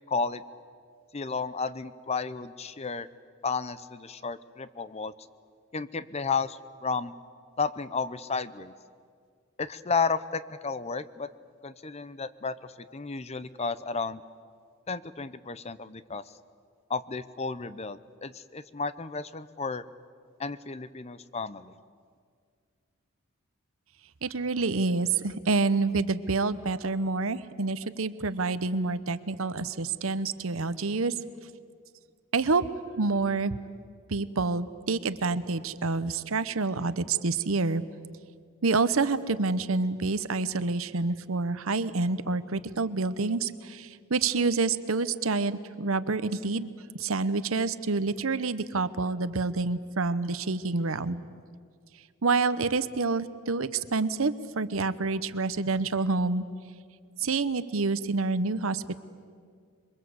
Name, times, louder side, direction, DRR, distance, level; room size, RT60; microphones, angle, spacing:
voice 1, 0.1-0.4 1.1-3.1 3.4-5.1 5.7-7.1 7.6-8.7 9.6-11.3 11.6-14.2 14.9-16.2 16.9-19.8 20.4-21.8, left 4 dB, 30° left, 15 dB, 0.7 m, -32 dB
voice 2, 24.2-31.1 32.3-32.6 33.0-33.5 34.1-37.8 38.6-46.7 46.9-51.2 52.2-56.4 57.2-59.0, right 3 dB, 80° right, 14 dB, 0.9 m, -28 dB
27.0 x 22.5 x 8.0 m, 2.1 s
head